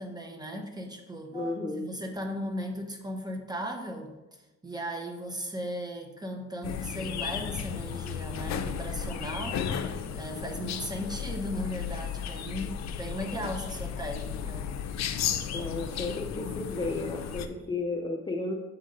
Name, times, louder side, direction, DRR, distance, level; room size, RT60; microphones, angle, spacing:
voice 1, 0.0-4.1 4.6-9.6 10.1-14.7, equal, 15° right, 3 dB, 0.9 m, -37 dB
voice 2, 1.3-2.0 15.5-18.5, left 2 dB, 15° left, 0 dB, 0.5 m, -33 dB
sound 1, 6.6-17.5, left 8 dB, 60° left, 0.5 m, -34 dB
7.2 x 2.7 x 5.0 m, 1.1 s
cardioid pair, 90°, 30 cm